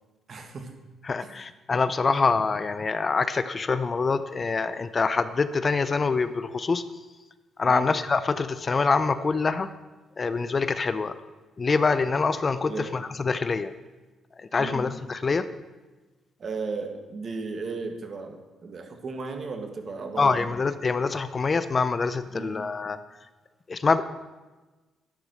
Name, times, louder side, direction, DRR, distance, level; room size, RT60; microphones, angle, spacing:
voice 1, 0.3-0.7 1.2-1.3 7.6-7.9 12.7-12.9 14.6-14.9 16.4-20.5 22.3-22.6, right 4 dB, 45° right, 5 dB, 1.9 m, -35 dB
voice 2, 1.0-6.8 7.6-9.7 10.2-11.1 11.6-13.7 14.5-15.5 20.2-23.0 23.7-24.0, left 4 dB, 35° left, 12 dB, 0.6 m, -25 dB
11.5 x 9.8 x 6.4 m, 1.2 s
cardioid pair, 90°, 0 cm